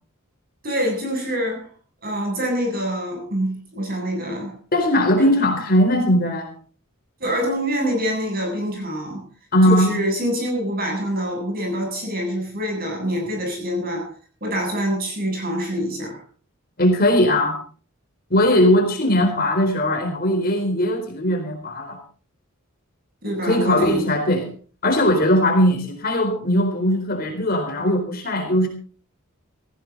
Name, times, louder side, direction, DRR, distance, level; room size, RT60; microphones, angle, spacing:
voice 1, 0.6-1.7 2.0-4.5 5.2-5.3 7.2-9.3 9.7-14.1 14.4-16.2 23.2-24.1, equal, 45° right, 2 dB, 7.7 m, -25 dB
voice 2, 4.7-6.5 9.5-9.9 16.8-17.6 18.3-22.0 23.4-24.5 24.8-28.7, equal, 45° left, 3 dB, 4.2 m, -19 dB
18.0 x 15.5 x 4.0 m, 0.41 s
head